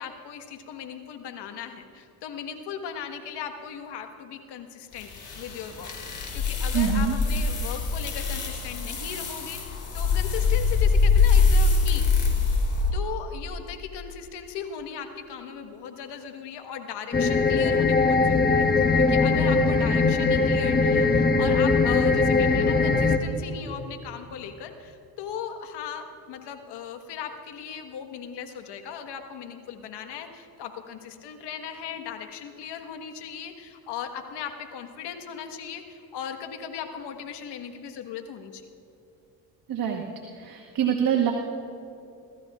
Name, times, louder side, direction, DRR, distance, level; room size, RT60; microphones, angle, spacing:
voice 1, 0.0-12.1 12.9-38.6, left 7 dB, 65° left, 6 dB, 1.5 m, -38 dB
sound 1, 5.0-12.9, left 4 dB, 40° left, 3.5 m, -23 dB
voice 2, 6.7-7.1 39.7-40.0 40.4-41.3, right 9 dB, 50° right, 2 dB, 1.2 m, -25 dB
sound 2, 17.1-23.2, left 4 dB, 20° left, 1.1 m, -21 dB
26.0 x 13.5 x 2.4 m, 2.7 s
supercardioid pair, 70°, 44 cm